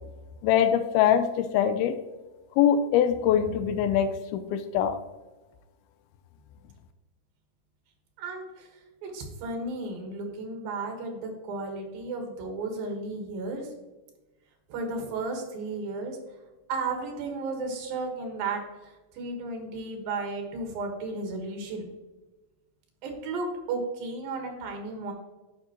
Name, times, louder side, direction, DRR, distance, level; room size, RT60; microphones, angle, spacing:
voice 1, 0.4-2.0 2.6-5.0, left 9 dB, 85° left, 9 dB, 2.4 m, -23 dB
voice 2, 8.2-8.7 9.0-13.7 14.7-16.2 16.7-21.9 23.0-25.1, right 3 dB, 70° right, 3 dB, 3.1 m, -34 dB
9.8 x 6.2 x 2.9 m, 1.2 s
omnidirectional pair, 4.5 m